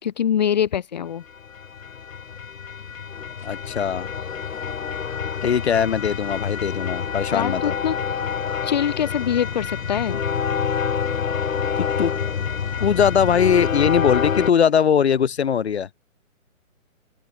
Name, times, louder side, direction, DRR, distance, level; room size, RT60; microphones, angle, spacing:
voice 1, 0.0-1.2 7.3-8.0 8.6-10.2, left 9 dB, 30° left, 1.8 m, -24 dB
sound 1, 1.3-14.5, left 7 dB, 75° left, 1.9 m, -27 dB
voice 2, 3.4-4.1 5.4-7.7 11.8-12.1 12.8-15.9, left 7 dB, 50° left, 1.3 m, -20 dB
open air
hypercardioid pair, 170°, 41 cm